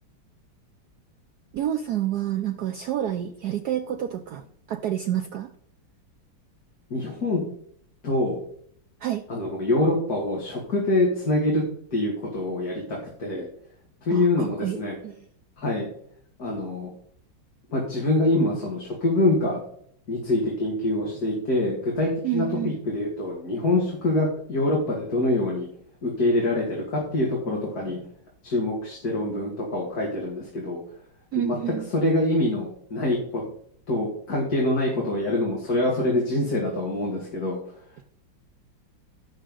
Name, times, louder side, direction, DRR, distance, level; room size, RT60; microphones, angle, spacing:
voice 1, 1.5-5.5 9.0-9.2 14.1-14.8 15.0-15.3 22.2-22.8 31.3-31.9, right 11 dB, 70° right, 8 dB, 1.0 m, -29 dB
voice 2, 6.9-7.4 8.0-8.4 9.3-11.6 11.9-13.5 14.0-14.9 15.6-15.9 16.4-16.9 17.7-19.6 20.1-25.7 26.0-28.0 28.4-30.8 31.4-33.4 33.9-37.6, left 2 dB, 45° left, -2 dB, 2.8 m, -25 dB
15.5 x 6.4 x 3.8 m, 0.64 s
omnidirectional pair, 2.3 m